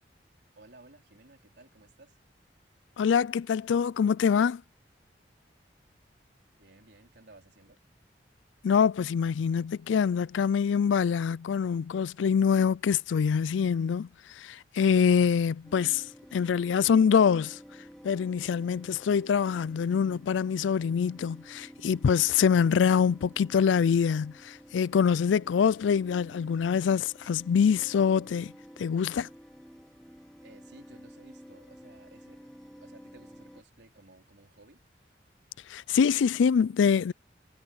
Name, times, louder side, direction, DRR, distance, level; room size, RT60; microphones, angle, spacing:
voice 1, 0.6-2.2 6.6-7.8 30.4-34.8, right 2 dB, 70° right, 3.6 m, -56 dB
voice 2, 3.0-4.6 8.6-17.6 18.0-28.5 28.8-29.3 35.7-37.1, left 7 dB, 90° left, 0.4 m, -25 dB
sound 1, 15.6-33.6, equal, 5° left, 2.8 m, -51 dB
head